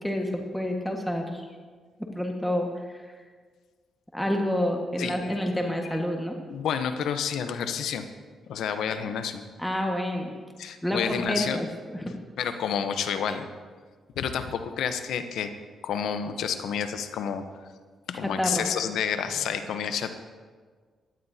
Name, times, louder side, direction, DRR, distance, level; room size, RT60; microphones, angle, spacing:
voice 1, 0.0-1.4 2.1-3.1 4.1-6.4 9.6-10.3 10.8-12.1 18.4-18.7, left 1 dB, 5° left, 1 dB, 1.5 m, -28 dB
voice 2, 6.5-8.0 8.5-9.4 10.6-11.6 12.4-13.5 14.2-15.5 15.8-17.4 18.1-20.1, left 7 dB, 80° left, 9 dB, 0.8 m, -29 dB
16.5 x 11.5 x 2.8 m, 1.5 s
cardioid pair, 70°, 0 cm